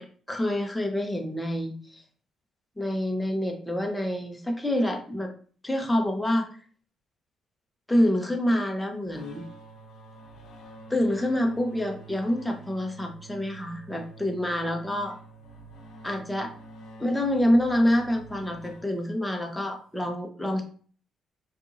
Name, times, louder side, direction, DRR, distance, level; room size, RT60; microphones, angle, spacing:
voice 1, 0.0-2.0 2.8-5.3 5.6-6.5 7.9-9.4 10.9-15.1 16.0-16.5 17.0-20.6, left 1 dB, 10° left, 3 dB, 0.7 m, -27 dB
sound 1, 9.1-19.3, right 3 dB, 80° left, 0.7 m, -48 dB
4.0 x 2.5 x 2.5 m, 0.44 s
cardioid pair, 90°, 0 cm